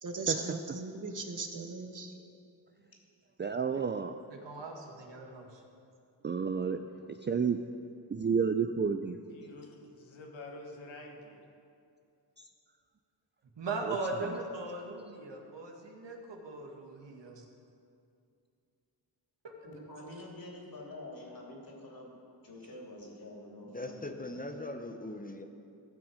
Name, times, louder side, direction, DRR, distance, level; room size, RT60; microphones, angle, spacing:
voice 1, 0.0-2.3, right 3 dB, 40° right, 4 dB, 1.3 m, -37 dB
voice 2, 3.4-4.1 6.2-6.8 7.1-7.6 8.1-9.2 12.4-12.5 13.8-13.9, right 6 dB, 25° right, 7 dB, 0.4 m, -30 dB
voice 3, 4.3-5.6 13.6-17.4 19.4-19.5, right 3 dB, 65° right, 1 dB, 1.8 m, -39 dB
voice 4, 9.3-11.4, left 2 dB, 90° left, 1 dB, 1.4 m, -48 dB
voice 5, 19.6-22.1 22.4-24.4, left 1 dB, 50° left, -2 dB, 3.0 m, -47 dB
voice 6, 23.7-25.4, left 1 dB, 20° left, 5 dB, 0.9 m, -40 dB
16.0 x 6.0 x 5.0 m, 2.5 s
cardioid pair, 60°, 45 cm